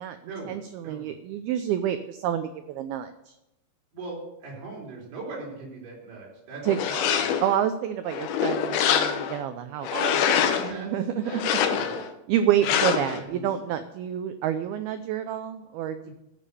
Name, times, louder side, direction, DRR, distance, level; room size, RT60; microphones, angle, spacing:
voice 1, 0.5-3.3 6.6-6.8 7.4-9.9 10.8-11.3 12.3-16.1, right 10 dB, 85° right, 9 dB, 2.2 m, -28 dB
voice 2, 3.9-7.4 9.9-10.9 11.2-12.0 12.7-13.4 16.0-16.1, right 3 dB, 65° right, -3 dB, 6.0 m, -38 dB
sound 1, 6.7-7.6 8.1-9.4 9.8-10.7 11.3-12.1 12.6-13.2, left 8 dB, 70° left, 2.7 m, -25 dB
14.0 x 7.1 x 6.9 m, 0.88 s
omnidirectional pair, 5.1 m